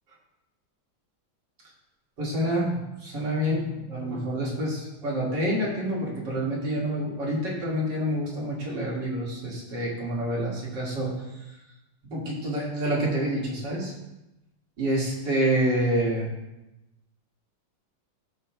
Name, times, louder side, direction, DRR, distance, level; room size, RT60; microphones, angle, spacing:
voice 1, 2.2-11.1 12.0-13.9 14.8-16.3, right 1 dB, 60° right, -5 dB, 2.7 m, -27 dB
16.0 x 5.6 x 2.3 m, 0.97 s
omnidirectional pair, 2.2 m